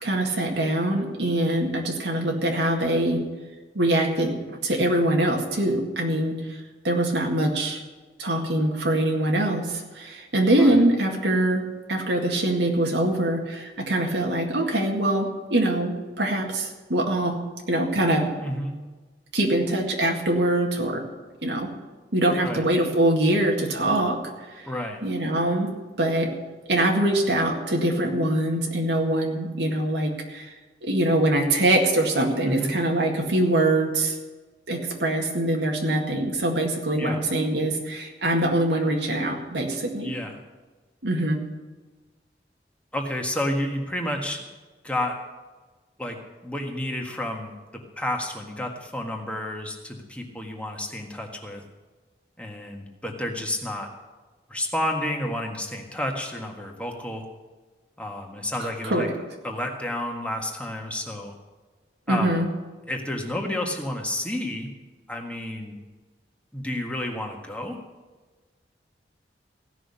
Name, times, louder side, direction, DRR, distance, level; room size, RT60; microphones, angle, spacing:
voice 1, 0.0-3.2 3.8-6.6 6.8-7.8 8.2-11.6 11.9-17.4 17.7-18.3 19.3-21.0 21.4-21.7 22.1-24.2 24.5-24.7 25.0-26.3 26.7-30.5 30.8-34.2 34.7-40.1 41.0-41.4 58.6-59.1 62.1-62.5, right 1 dB, 80° right, 1 dB, 2.0 m, -23 dB
voice 2, 18.4-18.7 22.4-22.6 24.7-25.0 32.4-32.8 37.0-37.2 40.0-40.3 42.9-44.4 44.8-45.1 46.0-46.2 46.4-47.5 48.0-51.6 52.4-53.9 54.5-57.2 58.0-59.1 59.4-61.3 62.1-62.4 62.9-64.7 65.1-65.8 66.5-67.8, left 1 dB, 5° left, 2 dB, 1.7 m, -30 dB
16.0 x 6.3 x 9.9 m, 1.3 s
head